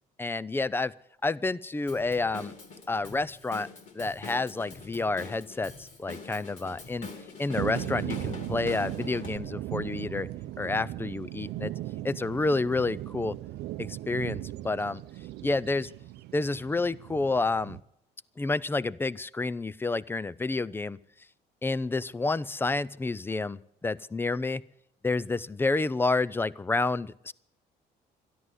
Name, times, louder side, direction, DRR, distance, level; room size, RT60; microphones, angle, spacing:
voice 1, 0.2-0.9 1.2-2.5 2.9-3.7 3.9-7.1 7.4-10.3 10.6-11.7 12.0-13.4 13.8-15.0 15.4-15.9 16.3-17.8 18.4-21.0 21.6-24.6 25.0-27.3, left 3 dB, 15° left, 19 dB, 0.5 m, -29 dB
Drum kit / Drum, 1.9-9.4, left 3 dB, 45° left, 2.6 m, -44 dB
sound 1, 7.6-17.8, right 15 dB, 85° right, 0.6 m, -37 dB
13.0 x 11.0 x 8.0 m, 0.72 s
cardioid pair, 110°, 17 cm